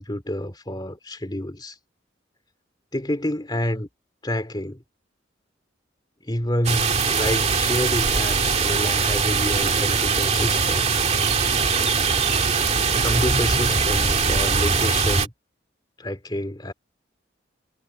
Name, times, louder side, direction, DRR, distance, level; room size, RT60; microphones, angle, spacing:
voice 1, 0.0-1.8 2.9-3.9 4.2-4.8 6.2-10.8 13.0-15.3 16.0-16.7, left 1 dB, 20° left, 2.5 m, -28 dB
sound 1, 6.6-15.3, right 5 dB, 35° right, 2.3 m, -21 dB
head